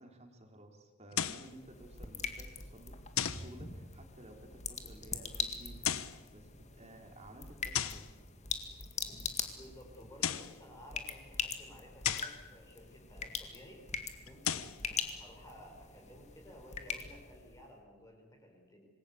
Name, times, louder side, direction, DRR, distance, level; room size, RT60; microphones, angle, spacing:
voice 1, 0.0-6.0 6.3-8.1, right 1 dB, 30° right, 4 dB, 3.2 m, -54 dB
sound 1, 1.1-1.5 3.2-3.5 5.7-6.2 7.7-8.1 10.0-10.6 12.0-12.4 14.3-14.8, left 9 dB, 75° left, 1.0 m, -35 dB
sound 2, 1.2-17.7, left 5 dB, 35° left, 2.0 m, -42 dB
voice 2, 9.1-13.8 14.2-18.9, left 1 dB, 15° left, 1 dB, 4.4 m, -55 dB
26.5 x 20.0 x 8.4 m, 1.4 s
head